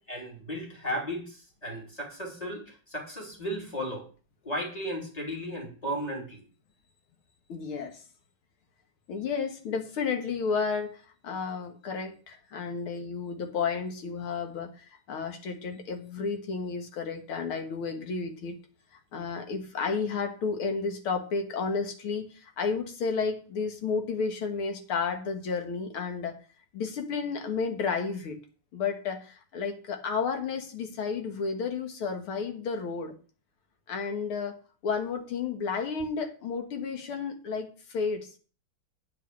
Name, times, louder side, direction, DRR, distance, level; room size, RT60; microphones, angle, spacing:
voice 1, 0.1-4.1 4.4-6.4, equal, 15° left, 0 dB, 2.7 m, -35 dB
voice 2, 7.5-8.0 9.1-18.6 18.9-26.4 26.7-28.4 28.7-33.1 33.9-34.6 34.8-38.3, left 5 dB, 75° left, 5 dB, 2.3 m, -32 dB
9.1 x 4.9 x 7.5 m, 0.39 s
omnidirectional pair, 2.4 m